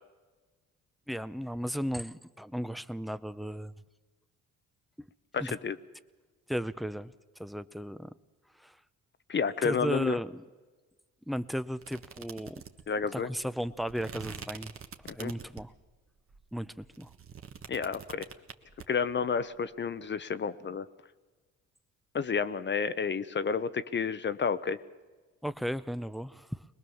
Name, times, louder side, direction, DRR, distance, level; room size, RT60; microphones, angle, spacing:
voice 1, 1.1-3.7 5.4-5.5 6.5-7.1 7.4-8.1 8.6-8.7 9.6-10.4 11.3-12.6 13.1-14.7 15.1-15.7 16.5-17.1 25.4-26.7, equal, ahead, 14 dB, 0.7 m, -35 dB
voice 2, 5.3-5.8 9.3-10.2 12.9-13.3 15.2-15.3 17.7-18.3 18.9-20.9 22.1-24.8, left 6 dB, 35° left, 13 dB, 0.8 m, -30 dB
sound 1, 11.8-15.8 16.3-18.9, right 6 dB, 45° right, 1.5 m, -45 dB
22.0 x 20.5 x 7.1 m, 1.3 s
cardioid pair, 90°, 30 cm